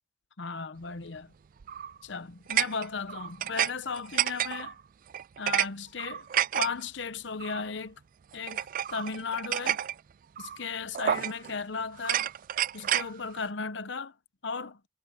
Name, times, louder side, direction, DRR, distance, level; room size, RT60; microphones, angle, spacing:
voice 1, 0.4-1.3 2.0-4.8 5.4-6.3 6.5-8.0 8.3-8.6 8.9-9.8 10.4-12.3 12.7-14.1 14.4-14.8, left 5 dB, 65° left, 0.8 m, -35 dB
sound 1, 1.6-2.0 2.5-3.7 4.0-4.7 5.1-5.7 6.0-6.7 7.4-7.6 8.5-9.9 10.4-10.6 10.9-11.5 12.0-13.1, right 11 dB, 45° right, 0.3 m, -29 dB
head